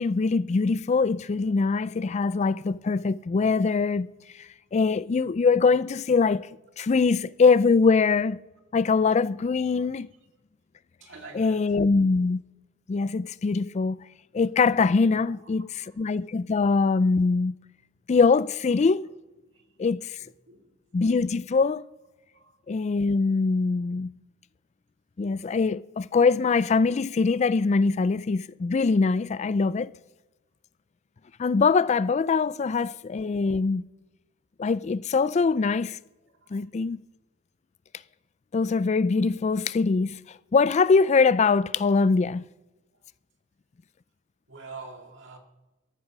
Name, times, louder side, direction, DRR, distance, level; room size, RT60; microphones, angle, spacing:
voice 1, 0.0-4.1 4.4-6.5 6.8-8.4 8.7-10.1 11.4-12.4 12.9-14.0 14.3-15.6 16.0-17.5 18.1-19.1 19.8-20.2 20.9-21.8 22.7-24.1 25.2-29.9 31.4-33.8 34.6-36.0 36.5-37.0 38.5-42.4, left 4 dB, 35° left, 0.4 m, -23 dB
voice 2, 11.0-11.8 15.2-15.5 15.8-16.0 19.5-19.8 20.2-20.8 22.3-22.6 36.3-36.7 42.1-42.3 42.9-43.1 44.5-45.4, right 4 dB, 65° right, 2.3 m, -47 dB
14.0 x 11.0 x 6.0 m
head